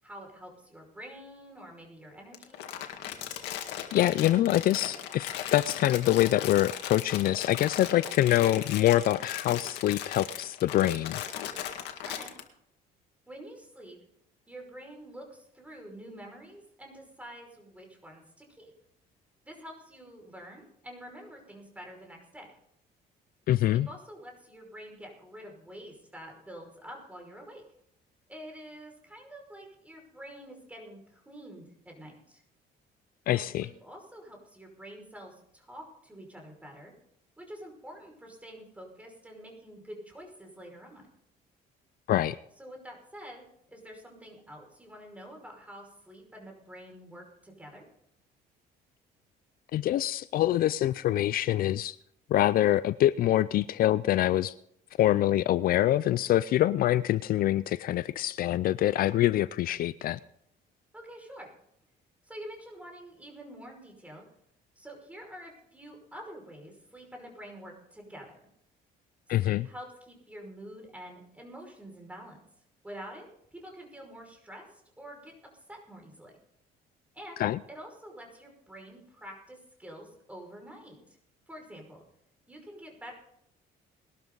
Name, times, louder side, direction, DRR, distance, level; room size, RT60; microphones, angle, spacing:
voice 1, 0.0-2.6 12.0-12.3 13.3-14.0 14.5-18.7 19.4-22.5 23.6-27.6 28.3-32.4 33.3-36.9 37.4-41.1 42.6-43.4 43.7-47.8 60.9-61.5 62.2-64.2 64.8-68.5 69.4-72.4 72.8-76.4 77.1-77.4 77.7-81.2 81.5-82.0 82.5-83.1, equal, 10° right, 1 dB, 5.5 m, -47 dB
Crumpling crinkling, 2.3-12.4, left 11 dB, 85° left, 2.0 m, -38 dB
voice 2, 3.9-11.2 23.5-23.9 33.3-33.7 42.1-42.4 49.7-52.0 52.3-54.5 55.0-60.2 69.3-69.7 77.4-77.6, left 13 dB, 60° left, 17 dB, 0.4 m, -25 dB
20.5 x 12.5 x 4.0 m, 0.72 s
cardioid pair, 110°, 17 cm